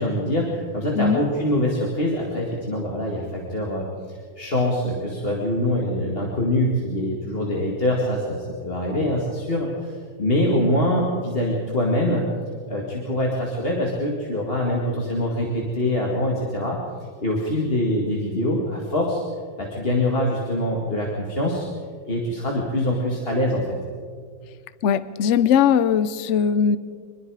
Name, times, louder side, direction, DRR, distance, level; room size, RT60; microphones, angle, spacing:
voice 1, 0.0-12.3 12.7-16.8 17.2-19.2 19.6-21.7 22.0-23.6, left 1 dB, 30° left, -2 dB, 2.3 m, -24 dB
voice 2, 24.8-26.8, left 7 dB, 60° left, 14 dB, 0.7 m, -19 dB
25.5 x 21.5 x 4.9 m, 2.1 s
omnidirectional pair, 2.1 m